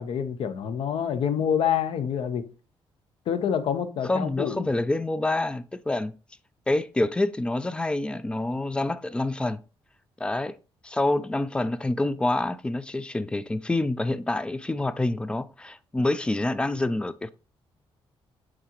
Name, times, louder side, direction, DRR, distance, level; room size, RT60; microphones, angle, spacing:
voice 1, 0.0-2.4 3.3-4.7, left 8 dB, 65° left, 0.8 m, -27 dB
voice 2, 4.0-6.1 6.7-9.6 10.2-10.6 10.8-17.3, left 2 dB, 10° left, 0.3 m, -27 dB
8.8 x 3.8 x 2.9 m
cardioid pair, 150°, 10 cm